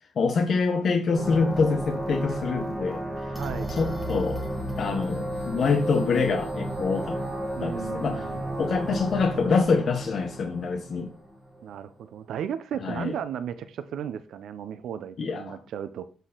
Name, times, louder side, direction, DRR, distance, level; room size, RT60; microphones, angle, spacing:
voice 1, 0.2-3.0 3.7-4.4 4.8-7.2 7.6-8.3 8.6-11.1 12.8-13.1 15.2-15.6, left 4 dB, 45° left, 5 dB, 0.7 m, -25 dB
sound 1, 1.1-11.7, right 1 dB, ahead, 1.6 m, -32 dB
voice 2, 3.3-3.7 7.6-8.4 11.6-16.0, right 9 dB, 75° right, 11 dB, 0.5 m, -35 dB
7.9 x 4.2 x 3.8 m, 0.40 s
cardioid pair, 150°, 0 cm